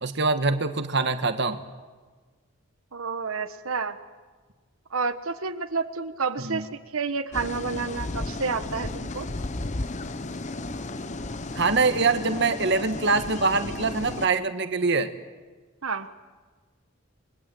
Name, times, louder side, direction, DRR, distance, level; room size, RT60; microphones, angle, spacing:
voice 1, 0.0-1.6 6.4-6.6 11.5-15.1, right 3 dB, 55° right, 8 dB, 1.4 m, -24 dB
voice 2, 2.9-4.0 4.9-9.3 15.8-16.1, right 4 dB, 85° right, 9 dB, 1.2 m, -30 dB
sound 1, 7.3-14.3, left 2 dB, 35° left, 0.9 m, -34 dB
28.5 x 22.0 x 7.7 m, 1.4 s
head